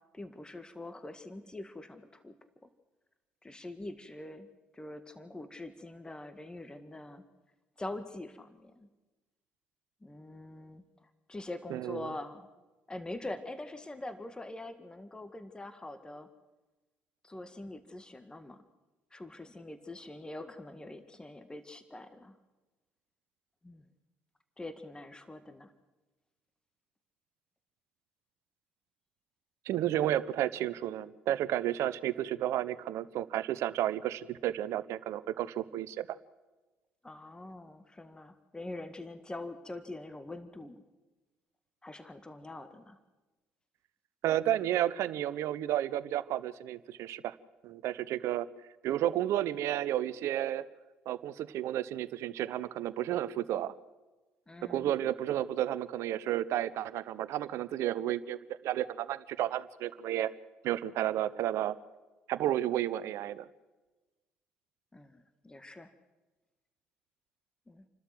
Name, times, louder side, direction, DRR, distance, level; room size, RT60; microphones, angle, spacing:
voice 1, 0.1-2.4 3.4-4.5 4.7-7.2 7.8-8.9 10.0-12.5 12.9-16.3 17.2-18.6 19.1-22.4 23.6-23.8 24.6-25.7 37.0-40.8 41.8-43.0 54.5-54.9 64.9-65.9 67.7-67.8, left 2 dB, 15° left, 10 dB, 1.8 m, -44 dB
voice 2, 11.7-12.1 29.7-36.1 44.2-47.3 47.6-48.5 48.8-50.6 51.1-53.7 54.7-58.4 58.6-60.3 60.6-61.7 62.3-63.5, right 12 dB, 65° right, 17 dB, 0.8 m, -32 dB
29.0 x 12.5 x 7.8 m, 1.2 s
hypercardioid pair, 55°, 5 cm